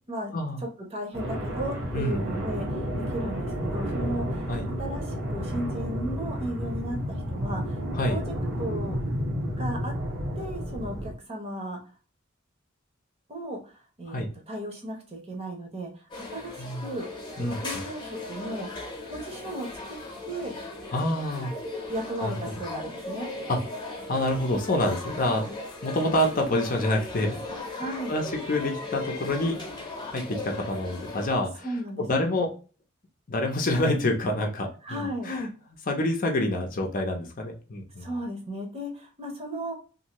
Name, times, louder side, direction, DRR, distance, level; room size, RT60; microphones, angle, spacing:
voice 1, 0.9-4.5 4.8-8.2 8.6-9.0 9.6-9.9 10.4-11.8 13.3-20.0 20.3-20.5 21.9-23.3 27.8-28.2 31.6-32.4 34.8-35.3 38.0-39.7, right 1 dB, 30° right, 1 dB, 0.9 m, -35 dB
sound 1, 1.1-11.1, equal, 65° right, 1.4 m, -31 dB
voice 2, 1.9-2.5 4.5-4.7 7.9-8.2 14.1-14.3 16.6-16.9 17.4-17.6 20.9-21.5 22.2-22.4 23.5-23.6 24.1-27.4 28.1-29.6 30.1-31.7 32.0-32.5 33.3-35.5 35.8-38.1, left 1 dB, 45° left, 2 dB, 0.6 m, -27 dB
sound 2, 16.1-31.3, left 2 dB, 25° left, 0.9 m, -38 dB
2.7 x 2.6 x 2.9 m, 0.36 s
head